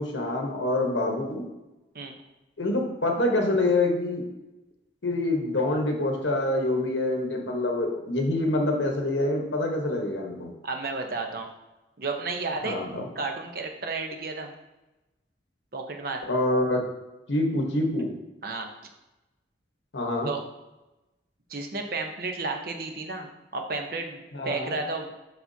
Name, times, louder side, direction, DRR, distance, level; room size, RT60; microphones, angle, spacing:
voice 1, 0.0-1.4 2.6-4.2 5.0-10.5 12.6-13.1 16.3-16.8 17.3-18.1 19.9-20.3 24.3-24.8, left 2 dB, 80° left, 2 dB, 1.1 m, -26 dB
voice 2, 10.6-11.5 12.0-12.8 13.1-14.5 15.7-16.2 18.4-18.7 20.2-20.4 21.5-25.1, right 3 dB, 50° right, 4 dB, 0.8 m, -32 dB
6.8 x 5.8 x 2.8 m, 1.0 s
head